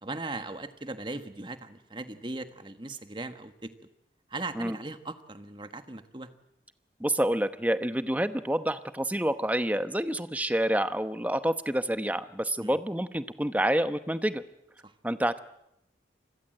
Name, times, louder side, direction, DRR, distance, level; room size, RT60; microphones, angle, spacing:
voice 1, 0.0-3.7 4.3-6.3 12.6-12.8 14.8-14.9, right 2 dB, 25° right, 9 dB, 1.4 m, -38 dB
voice 2, 7.0-14.4 15.0-15.4, right 1 dB, 10° right, 11 dB, 0.9 m, -28 dB
27.0 x 21.0 x 7.8 m, 0.79 s
head